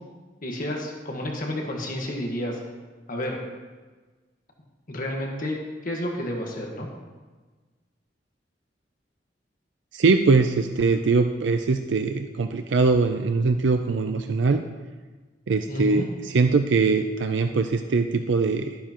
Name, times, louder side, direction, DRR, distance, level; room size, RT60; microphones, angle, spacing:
voice 1, 0.4-2.6 3.1-3.4 4.9-6.9 15.7-16.0, left 1 dB, 50° left, 0 dB, 1.5 m, -30 dB
voice 2, 9.9-14.6 15.5-18.8, right 4 dB, 80° right, 7 dB, 0.5 m, -22 dB
12.0 x 11.5 x 3.0 m, 1.3 s
head